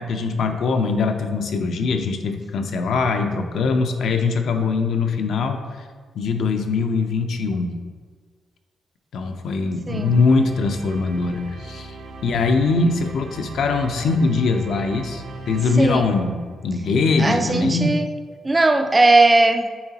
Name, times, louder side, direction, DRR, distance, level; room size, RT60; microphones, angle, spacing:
voice 1, 0.0-5.6 6.1-7.8 9.1-12.0 12.2-16.4 16.6-18.0, left 4 dB, 70° left, 5 dB, 0.5 m, -22 dB
voice 2, 9.9-10.2 15.8-16.1 17.2-18.1 18.4-19.7, right 2 dB, 20° right, 7 dB, 0.3 m, -18 dB
sound 1, 9.9-16.9, right 3 dB, 90° right, 0.9 m, -38 dB
8.6 x 3.9 x 2.8 m, 1.6 s
cardioid pair, 140°, 0 cm